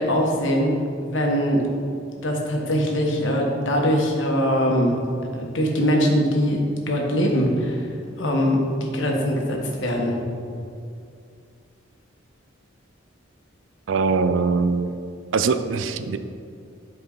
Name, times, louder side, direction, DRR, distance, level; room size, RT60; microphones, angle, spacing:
voice 1, 0.0-1.7 2.2-5.0 5.4-7.9 8.2-10.2, equal, 75° left, 0 dB, 1.3 m, -22 dB
voice 2, 13.9-15.0 15.3-16.2, right 4 dB, 80° right, 10 dB, 0.4 m, -22 dB
11.5 x 4.7 x 3.9 m, 2.4 s
head